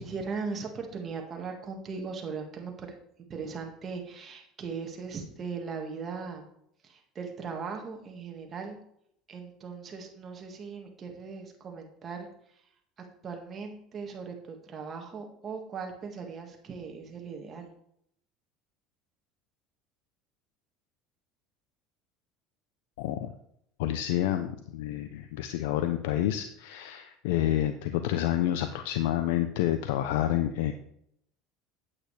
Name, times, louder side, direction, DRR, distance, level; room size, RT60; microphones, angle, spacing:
voice 1, 0.0-2.9 3.3-6.5 6.8-8.8 9.3-12.7 13.0-17.7, right 5 dB, 35° right, 2 dB, 1.7 m, -39 dB
voice 2, 23.0-23.3 23.8-30.7, left 12 dB, 85° left, 8 dB, 0.5 m, -29 dB
8.7 x 8.4 x 3.3 m, 0.72 s
supercardioid pair, 105°, 0 cm